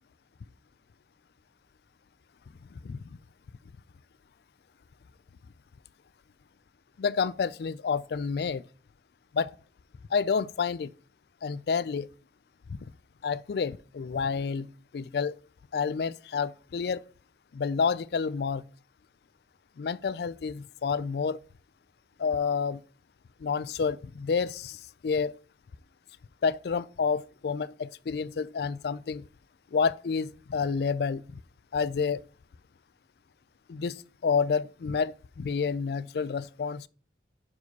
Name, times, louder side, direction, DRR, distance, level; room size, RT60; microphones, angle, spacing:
voice 1, 7.0-8.6 9.3-9.5 10.1-10.9 11.4-12.1 12.7-12.8 13.2-14.7 14.9-15.3 15.7-17.0 17.5-18.6 19.8-21.4 22.2-22.8 23.4-25.4 26.4-29.2 29.7-31.4 31.7-32.2 33.7-36.9, left 5 dB, 60° left, 0.4 m, -29 dB
6.1 x 4.9 x 5.3 m
head